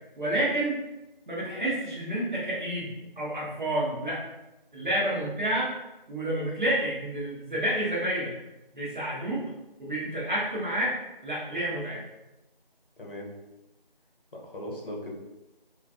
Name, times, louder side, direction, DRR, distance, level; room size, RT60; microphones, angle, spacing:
voice 1, 0.2-0.8 1.3-4.2 4.7-5.7 6.1-8.3 8.7-9.4 9.8-10.9 11.2-12.0, right 1 dB, 55° right, -6 dB, 1.0 m, -29 dB
voice 2, 13.0-13.3 14.3-15.1, left 1 dB, 65° left, -1 dB, 0.7 m, -38 dB
2.5 x 2.4 x 2.3 m, 0.99 s
figure-of-eight pair, 175°, 29 cm